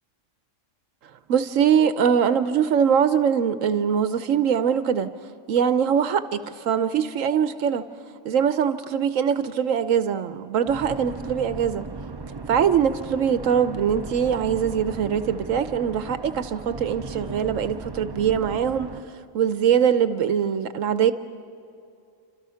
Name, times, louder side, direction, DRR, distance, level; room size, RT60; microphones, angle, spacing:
voice 1, 1.3-5.1 5.5-7.9 8.2-11.9 12.5-18.9 19.3-21.1, right 8 dB, 80° right, 11 dB, 1.1 m, -22 dB
sound 1, 10.7-19.0, right 4 dB, 25° right, 0.5 m, -37 dB
27.5 x 26.5 x 5.7 m, 2.6 s
omnidirectional pair, 1.3 m